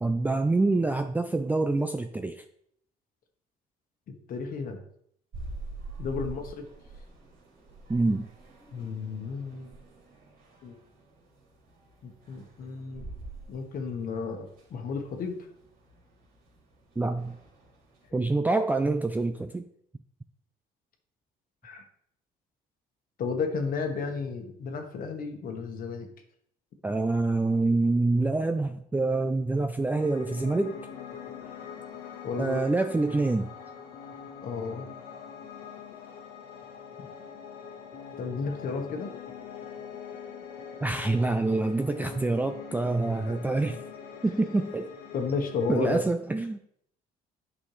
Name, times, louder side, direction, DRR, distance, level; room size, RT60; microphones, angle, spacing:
voice 1, 0.0-2.4 6.2-6.3 7.9-8.3 17.0-17.3 18.1-19.7 26.8-30.7 32.4-33.5 40.8-43.8 44.2-44.9 45.7-46.6, right 2 dB, 10° right, 7 dB, 0.4 m, -26 dB
voice 2, 4.3-4.8 6.0-6.7 8.7-9.7 10.6-10.8 12.0-13.1 13.5-15.4 21.6-21.8 23.2-26.1 32.2-32.6 34.4-34.9 37.0-37.1 38.2-39.1 43.3-43.4 45.1-46.1, left 4 dB, 60° left, 4 dB, 1.3 m, -33 dB
sound 1, 5.3-18.1, right 2 dB, 65° right, 2.8 m, -46 dB
Piano, 29.9-46.0, left 7 dB, 80° left, 1.3 m, -43 dB
9.2 x 5.5 x 3.2 m, 0.70 s
cardioid pair, 110°, 17 cm